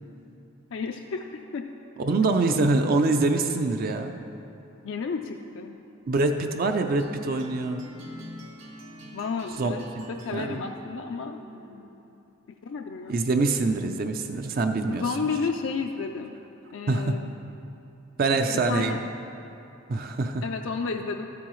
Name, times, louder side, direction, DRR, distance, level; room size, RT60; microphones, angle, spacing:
voice 1, 0.7-1.6 4.8-5.8 9.1-9.8 10.1-11.4 12.6-13.2 14.9-16.4 16.7-17.3 18.5-19.0 20.4-21.2, left 5 dB, 60° left, 3 dB, 0.4 m, -32 dB
voice 2, 2.0-4.2 6.1-7.9 9.6-9.7 10.3-10.6 13.1-15.0 16.9-17.2 18.2-19.0 19.9-20.4, right 3 dB, 45° right, 6 dB, 0.4 m, -24 dB
sound 1, 7.0-12.1, equal, 65° right, 1.2 m, -45 dB
12.5 x 8.5 x 3.1 m, 2.8 s
head